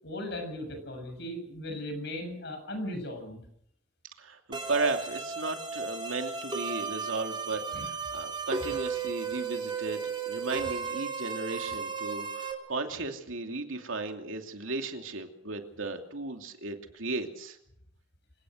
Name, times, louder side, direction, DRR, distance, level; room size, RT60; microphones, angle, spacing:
voice 1, 0.0-3.4 7.7-7.9 8.7-8.8, left 1 dB, 60° left, 5 dB, 7.4 m, -37 dB
voice 2, 4.2-17.6, right 3 dB, 85° right, 5 dB, 2.7 m, -35 dB
sound 1, 4.5-12.5, right 5 dB, 25° right, 3.3 m, -35 dB
26.5 x 17.5 x 6.5 m, 0.74 s
head